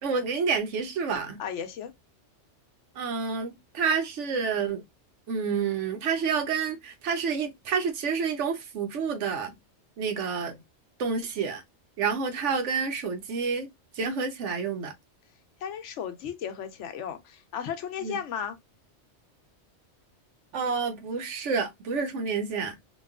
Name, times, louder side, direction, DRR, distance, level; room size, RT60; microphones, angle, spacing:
voice 1, 0.0-1.4 3.0-4.8 5.3-9.5 10.0-10.6 11.0-11.6 12.0-13.7 14.0-14.9 18.0-18.2 20.5-22.8, right 5 dB, 85° right, 1.1 m, -29 dB
voice 2, 1.4-1.9 15.6-18.6, left 8 dB, 85° left, 1.0 m, -35 dB
2.9 x 2.3 x 2.3 m
omnidirectional pair, 1.2 m